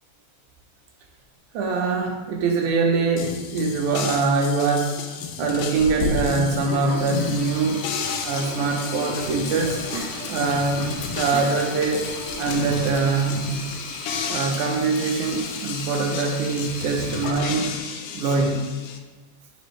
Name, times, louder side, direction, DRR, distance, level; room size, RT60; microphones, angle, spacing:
voice 1, 1.5-5.0 5.4-7.9 8.2-9.8 10.3-12.1 12.4-13.4 14.3-17.7 18.1-18.6, right 4 dB, 80° right, 2 dB, 2.1 m, -23 dB
sound 1, 3.2-19.0, left 6 dB, 90° left, 2.2 m, -33 dB
Sink (filling or washing), 5.8-17.8, left 3 dB, 70° left, 1.8 m, -34 dB
sound 2, 7.3-13.5, right 2 dB, 60° right, 1.0 m, -37 dB
8.0 x 5.0 x 3.2 m, 1.3 s
omnidirectional pair, 3.6 m